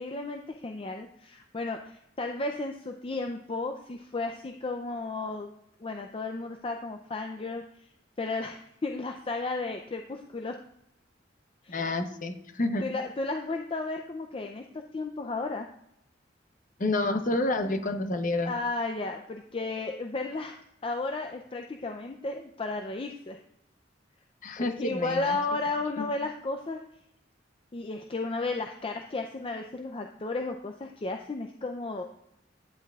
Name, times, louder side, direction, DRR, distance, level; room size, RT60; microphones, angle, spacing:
voice 1, 0.0-5.5 5.8-7.6 8.2-10.5 11.6-11.8 12.8-14.6 14.9-15.7 18.4-23.4 24.8-26.8 27.7-32.0, left 3 dB, 30° left, 4 dB, 0.5 m, -33 dB
voice 2, 11.7-12.8 16.8-18.5 24.4-25.4 26.0-26.1, left 2 dB, 45° left, 7 dB, 0.9 m, -29 dB
10.0 x 8.1 x 2.4 m, 0.79 s
head